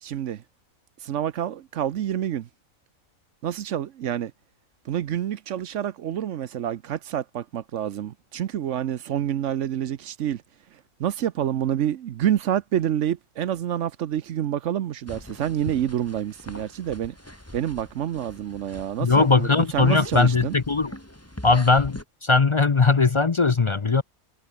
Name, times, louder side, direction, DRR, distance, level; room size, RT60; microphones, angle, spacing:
voice 1, 0.0-0.4 1.0-2.5 3.4-4.3 4.9-10.4 11.0-17.1 17.5-20.5, right 10 dB, 65° right, 1.0 m, -28 dB
sound 1, 15.1-22.0, left 1 dB, 10° left, 3.8 m, -42 dB
voice 2, 19.0-20.9 21.4-24.0, left 4 dB, 40° left, 0.4 m, -19 dB
omnidirectional pair, 1.5 m